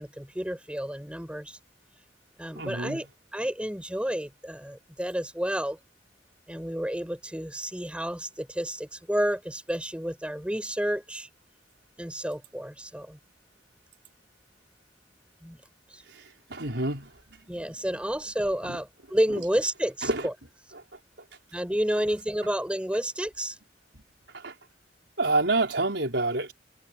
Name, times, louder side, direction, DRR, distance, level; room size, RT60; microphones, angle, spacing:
voice 1, 0.0-1.6 2.4-3.1 3.3-5.8 6.5-11.3 12.0-13.2 15.4-15.6 15.9-16.0 17.5-20.3 21.5-23.6, equal, 5° right, 5.5 m, -30 dB
voice 2, 2.5-3.0 16.1-16.2 16.5-17.1 17.6-17.7 18.7-18.8 20.0-20.3 20.7-20.8 24.3-24.5 25.2-26.5, right 2 dB, 75° right, 5.4 m, -28 dB
head